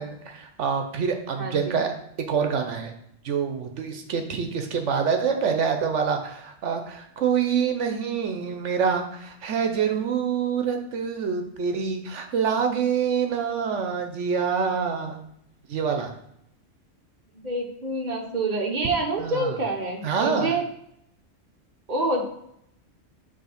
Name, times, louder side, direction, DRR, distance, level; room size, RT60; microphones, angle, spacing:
voice 1, 0.0-1.9 2.3-2.9 3.2-15.2 15.7-16.1 19.2-19.6 20.0-20.6, right 6 dB, 75° right, 5 dB, 1.0 m, -26 dB
voice 2, 1.4-1.8 17.4-20.6 21.9-22.3, right 2 dB, 40° right, 0 dB, 1.2 m, -27 dB
6.2 x 3.5 x 5.7 m, 0.74 s
omnidirectional pair, 1.3 m